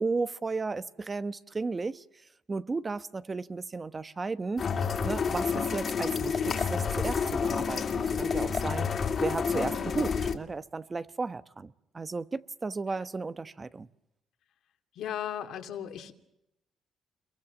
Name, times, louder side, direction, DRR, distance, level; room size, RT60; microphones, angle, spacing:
voice 1, 0.0-2.0 2.5-4.6 5.0-8.9 9.2-13.9, right 4 dB, 30° right, 13 dB, 1.0 m, -34 dB
sound 1, 4.6-10.4, left 6 dB, 50° left, 2.8 m, -29 dB
voice 2, 14.9-16.3, left 10 dB, 75° left, 7 dB, 2.7 m, -37 dB
29.0 x 23.0 x 7.2 m, 0.86 s
cardioid pair, 90°, 0 cm